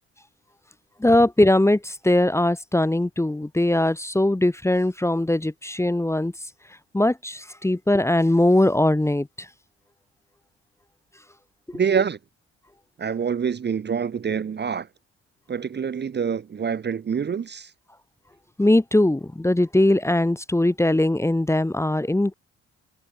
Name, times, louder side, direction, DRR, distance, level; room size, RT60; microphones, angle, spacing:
voice 1, 1.0-6.3 6.9-9.3 18.6-22.3, left 1 dB, 10° left, 0.9 m, -20 dB
voice 2, 11.7-12.2 13.0-14.9 15.5-17.7, right 7 dB, 35° right, 0.8 m, -26 dB
supercardioid pair, 65°, 29 cm